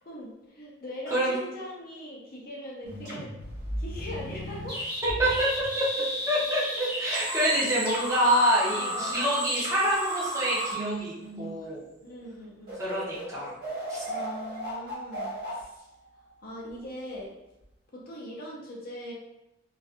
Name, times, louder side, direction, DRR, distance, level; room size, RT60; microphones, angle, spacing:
voice 1, 0.0-3.3 3.8-4.8 7.1-7.2 8.7-9.3 12.0-12.8 14.0-15.9 16.4-17.3 17.9-19.1, left 1 dB, 45° left, -3 dB, 0.5 m, -41 dB
sound 1, 2.8-11.7 12.2-12.4 12.7-16.6, right 1 dB, 50° right, 1.2 m, -34 dB
voice 2, 5.0-5.9 6.3-11.8 12.8-13.6 13.9-14.0, equal, 15° right, -8 dB, 0.7 m, -26 dB
2.6 x 2.3 x 2.4 m, 0.91 s
head